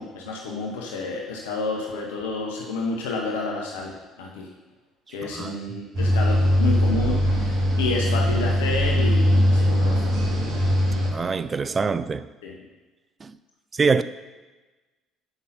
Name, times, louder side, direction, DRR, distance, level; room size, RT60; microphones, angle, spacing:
voice 1, 0.0-4.5 5.1-10.3 12.4-12.5, left 3 dB, 80° left, 0.8 m, -30 dB
voice 2, 5.2-5.6 11.1-12.3 13.2-13.3 13.7-14.0, right 5 dB, 35° right, 0.4 m, -24 dB
German Elevator With Voice, 5.9-11.1, equal, 60° right, 1.7 m, -21 dB
7.9 x 5.5 x 4.2 m
hypercardioid pair, 55°, 0 cm